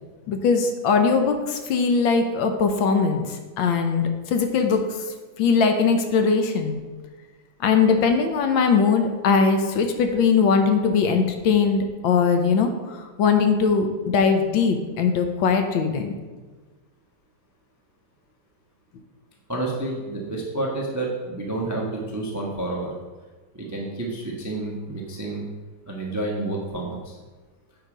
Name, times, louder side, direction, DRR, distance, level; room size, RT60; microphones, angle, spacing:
voice 1, 0.3-4.8 5.4-6.8 7.6-16.1, left 5 dB, 70° left, 6 dB, 1.4 m, -20 dB
voice 2, 19.5-22.9 23.5-25.4 25.9-27.2, right 2 dB, 25° right, -2 dB, 0.4 m, -29 dB
8.0 x 4.9 x 4.9 m, 1.3 s
omnidirectional pair, 2.4 m